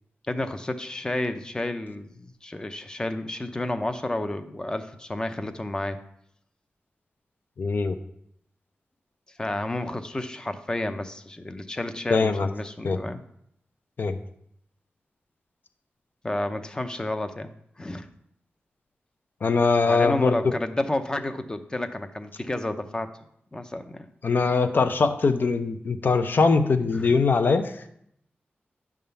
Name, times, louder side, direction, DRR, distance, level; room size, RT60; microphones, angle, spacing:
voice 1, 0.2-6.0 9.3-13.2 16.2-18.1 19.9-23.1 23.5-24.1 26.9-27.2, left 1 dB, 20° left, 8 dB, 0.6 m, -31 dB
voice 2, 7.6-8.0 12.1-12.5 12.8-13.0 14.0-14.2 19.4-20.4 24.2-27.7, left 4 dB, 55° left, 8 dB, 0.7 m, -22 dB
10.5 x 3.6 x 6.9 m, 0.72 s
wide cardioid pair, 140°, 4 cm